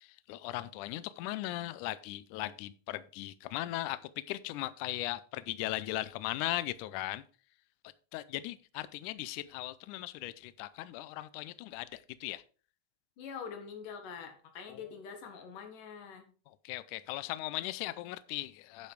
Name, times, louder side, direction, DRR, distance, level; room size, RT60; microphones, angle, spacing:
voice 1, 0.0-7.2 8.1-12.4 14.7-14.9 16.5-18.9, left 16 dB, 90° left, 1.8 m, -38 dB
voice 2, 13.2-16.2, left 6 dB, 65° left, 3.1 m, -44 dB
10.5 x 5.8 x 4.7 m
omnidirectional pair, 4.2 m